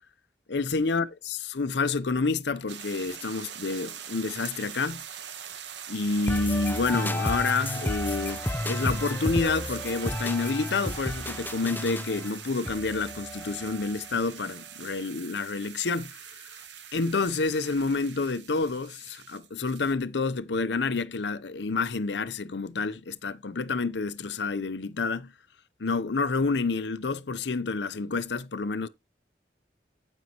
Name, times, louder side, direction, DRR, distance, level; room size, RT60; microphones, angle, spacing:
voice 1, 0.5-5.0 5.9-16.5 16.9-25.3 25.8-28.9, left 4 dB, 75° left, 0.7 m, -29 dB
sound 1, 2.7-19.9, right 8 dB, 80° right, 1.1 m, -42 dB
sound 2, 6.3-14.1, left 1 dB, 10° left, 0.5 m, -32 dB
9.4 x 8.9 x 2.9 m
head